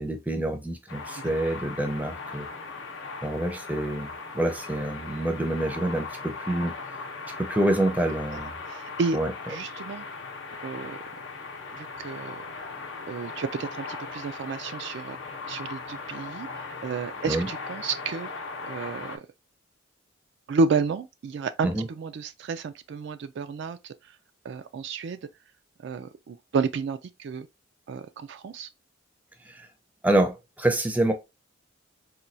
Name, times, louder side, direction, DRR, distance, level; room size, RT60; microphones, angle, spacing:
voice 1, 0.0-2.5 3.2-4.1 4.3-6.7 7.4-8.5 9.1-9.3 17.2-17.5 21.6-21.9 29.5-29.7 30.0-31.1, right 1 dB, 10° right, 0.5 m, -26 dB
sound 1, 0.9-19.2, left 4 dB, 65° left, 0.6 m, -38 dB
voice 2, 8.7-9.2 9.5-10.0 10.6-11.0 11.7-12.4 13.1-18.3 18.6-19.2 20.5-21.7 22.0-23.9 24.4-25.2 25.8-27.5 27.9-28.7, right 4 dB, 60° right, 0.3 m, -31 dB
4.2 x 2.2 x 2.5 m
head